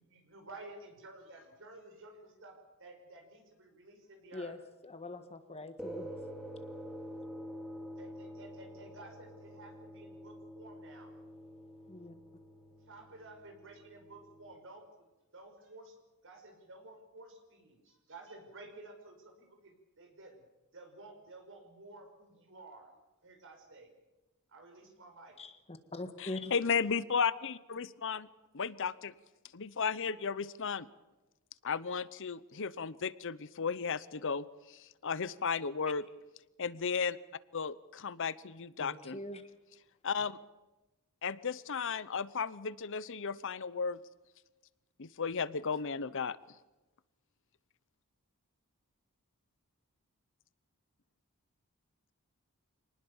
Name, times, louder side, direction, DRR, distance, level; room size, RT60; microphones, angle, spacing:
voice 1, 0.0-4.6 8.0-11.1 12.9-14.8 15.3-16.0 16.2-20.5 20.7-22.9 23.2-23.9 24.5-25.3, right 2 dB, 60° right, 4 dB, 6.1 m, -53 dB
voice 2, 4.8-6.1 11.9-12.1 25.4-26.5 38.8-39.5, left 2 dB, 30° left, 9 dB, 1.6 m, -43 dB
sound 1, 5.8-14.5, equal, ahead, 3.0 m, -47 dB
voice 3, 26.2-28.3 28.5-29.1 29.5-30.9 31.6-36.0 36.6-37.2 37.5-39.2 40.0-40.4 41.2-44.0 45.0-46.4, left 6 dB, 60° left, 17 dB, 0.8 m, -34 dB
26.5 x 19.5 x 7.2 m, 1.1 s
head